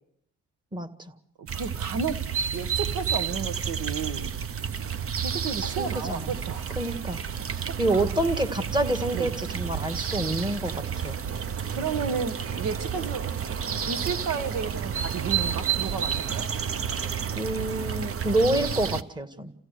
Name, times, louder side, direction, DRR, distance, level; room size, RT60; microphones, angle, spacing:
sound 1, 1.5-19.0, right 7 dB, 45° right, 1.0 m, -31 dB
voice 1, 1.5-2.2 2.5-4.3 5.2-6.8 7.7-8.0 9.1-9.3 11.7-13.2 13.9-16.5, right 6 dB, 85° right, 1.5 m, -32 dB
voice 2, 5.6-6.3 6.7-7.2 7.5-11.2 17.3-19.5, right 1 dB, 15° right, 1.9 m, -28 dB
29.0 x 16.5 x 6.6 m
cardioid pair, 90°, 30 cm